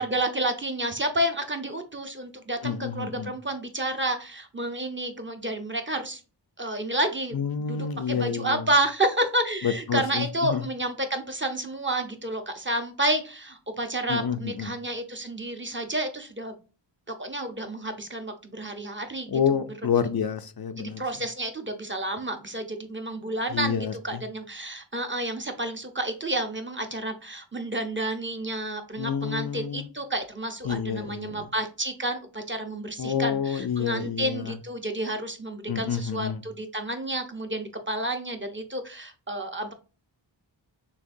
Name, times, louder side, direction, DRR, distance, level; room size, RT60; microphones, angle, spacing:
voice 1, 0.0-6.2 6.6-7.4 7.7-16.5 17.1-19.6 20.8-39.7, right 1 dB, 25° right, 5 dB, 0.8 m, -30 dB
voice 2, 2.6-3.3 7.3-8.7 9.6-10.7 14.1-14.7 19.3-21.0 23.5-24.2 29.0-29.9 30.6-31.5 33.0-34.5 35.7-36.4, left 7 dB, 55° left, 8 dB, 0.5 m, -28 dB
6.5 x 2.8 x 2.6 m, 0.34 s
wide cardioid pair, 80°, 46 cm